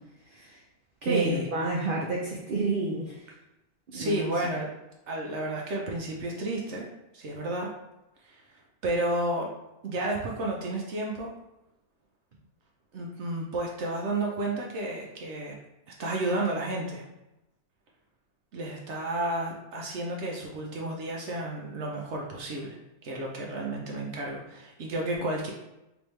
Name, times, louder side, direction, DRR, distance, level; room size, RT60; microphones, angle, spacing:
voice 1, 0.3-0.6 1.0-3.3 3.9-4.3, right 2 dB, 90° right, -2 dB, 0.4 m, -30 dB
voice 2, 1.0-1.5 3.9-4.7 5.1-6.9 7.1-7.7 8.2-9.5 9.8-11.3 12.9-15.6 16.0-17.0 18.5-22.8 23.0-25.5, right 1 dB, 60° right, -1 dB, 0.8 m, -31 dB
3.5 x 3.0 x 3.1 m, 0.94 s
omnidirectional pair, 1.6 m